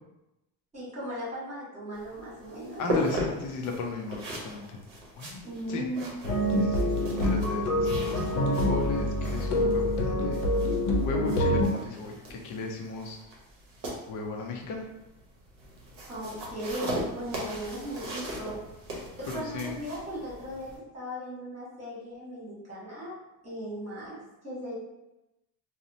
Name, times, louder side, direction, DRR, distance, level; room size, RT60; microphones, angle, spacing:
voice 1, 0.7-2.8 5.4-6.3 16.1-18.6 19.2-23.1 23.4-24.1 24.4-24.7, equal, 15° right, -8 dB, 1.3 m, -37 dB
sound 1, 1.9-20.8, equal, 45° right, 0.8 m, -38 dB
voice 2, 2.8-4.8 5.2-5.9 6.5-10.5 11.0-13.2 14.1-14.9 19.3-19.8, left 3 dB, 45° left, 2 dB, 0.5 m, -36 dB
sound 2, 6.2-11.7, left 1 dB, 75° left, 0.7 m, -26 dB
2.7 x 2.0 x 2.7 m, 0.95 s
cardioid pair, 130°, 45 cm